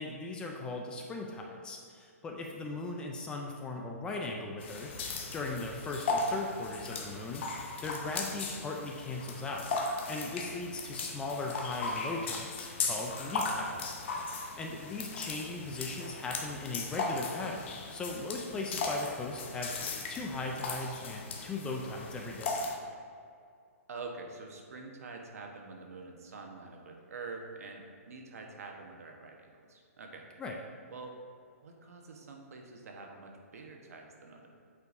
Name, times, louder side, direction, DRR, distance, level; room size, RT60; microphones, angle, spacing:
voice 1, 0.0-5.0 5.3-13.9 14.2-22.6 30.4-30.6, left 3 dB, 10° left, 1 dB, 0.4 m, -38 dB
sound 1, 4.6-22.8, left 3 dB, 50° left, 0.8 m, -37 dB
voice 2, 23.9-30.3 30.9-31.2 31.6-34.5, right 3 dB, 75° right, 2 dB, 1.0 m, -46 dB
8.4 x 4.5 x 2.6 m, 2.3 s
hypercardioid pair, 155°, 8 cm